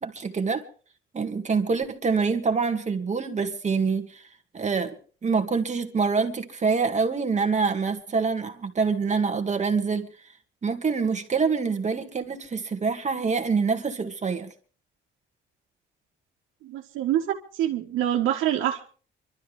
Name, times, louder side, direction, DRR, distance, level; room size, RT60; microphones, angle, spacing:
voice 1, 0.0-0.6 1.1-4.2 4.5-5.0 5.2-10.1 10.6-14.5, right 5 dB, 35° right, 2.0 m, -25 dB
voice 2, 16.6-18.8, right 11 dB, 90° right, 1.7 m, -26 dB
24.5 x 13.0 x 3.5 m
cardioid pair, 90°, 20 cm